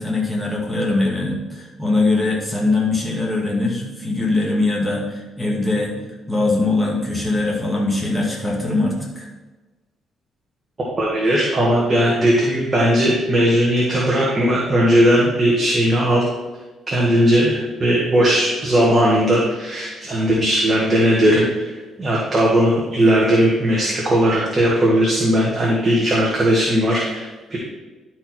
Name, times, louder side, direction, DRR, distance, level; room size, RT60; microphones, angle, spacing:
voice 1, 0.0-5.9 6.3-9.3, left 2 dB, 10° left, -2 dB, 2.3 m, -21 dB
voice 2, 10.8-16.3 16.9-27.6, equal, 30° right, -4 dB, 1.9 m, -18 dB
11.5 x 4.6 x 4.5 m, 1.2 s
cardioid pair, 90°, 0 cm